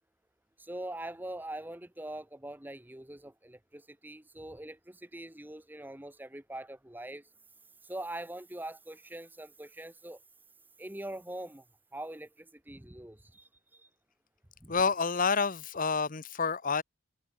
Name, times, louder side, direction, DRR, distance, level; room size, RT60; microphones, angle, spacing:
voice 1, 0.6-7.3 7.8-10.2 10.8-11.6 11.9-13.9 14.6-14.7, right 1 dB, 10° right, 1.0 m, -43 dB
voice 2, 14.7-16.8, left 5 dB, 40° left, 0.9 m, -28 dB
open air
head